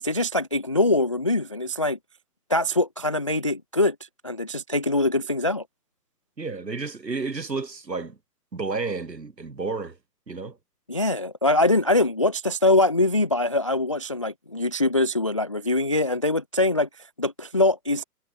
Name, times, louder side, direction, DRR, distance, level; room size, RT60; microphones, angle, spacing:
voice 1, 0.0-2.0 2.5-4.0 4.2-5.6 10.9-18.0, left 2 dB, 20° left, 0.4 m, -23 dB
voice 2, 6.4-8.2 8.5-10.0 10.3-10.6, right 4 dB, 90° right, 1.3 m, -31 dB
figure-of-eight pair, 120°, 49 cm